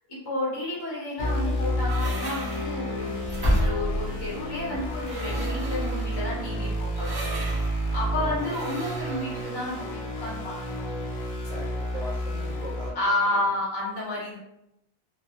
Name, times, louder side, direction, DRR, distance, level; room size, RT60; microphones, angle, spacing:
voice 1, 0.1-3.2 3.6-7.1 7.9-11.0 12.9-14.4, left 1 dB, 25° left, -6 dB, 0.7 m, -31 dB
sound 1, 1.2-12.9, equal, 55° left, 0.4 m, -30 dB
sound 2, 1.2-9.5, equal, 30° right, 0.5 m, -33 dB
voice 2, 7.2-7.6 8.2-8.4 11.5-13.5, right 1 dB, 65° right, -5 dB, 0.7 m, -40 dB
2.2 x 2.1 x 2.8 m, 0.83 s
omnidirectional pair, 1.1 m